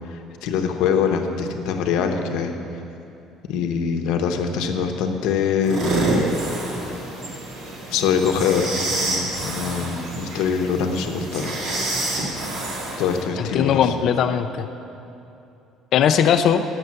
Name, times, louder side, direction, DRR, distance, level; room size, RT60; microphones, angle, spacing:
voice 1, 0.1-2.5 3.5-5.9 7.9-8.7 9.0-11.5 13.0-13.9, left 6 dB, 75° left, 5 dB, 0.9 m, -23 dB
sound 1, 5.6-13.2, right 2 dB, 45° right, 2.0 m, -27 dB
voice 2, 13.4-14.7 15.9-16.6, left 8 dB, 50° left, 8 dB, 0.4 m, -19 dB
9.4 x 6.7 x 7.5 m, 2.8 s
cardioid pair, 165°, 0 cm